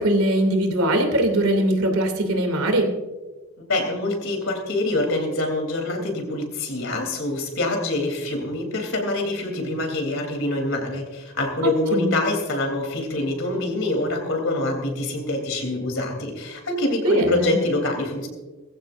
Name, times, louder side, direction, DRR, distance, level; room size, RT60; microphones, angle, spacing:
voice 1, 0.0-2.9 11.9-12.1 17.0-17.6, right 1 dB, 85° right, 4 dB, 2.8 m, -21 dB
voice 2, 3.7-18.3, left 2 dB, 60° left, 3 dB, 3.4 m, -25 dB
20.5 x 15.0 x 2.6 m, 1.2 s
head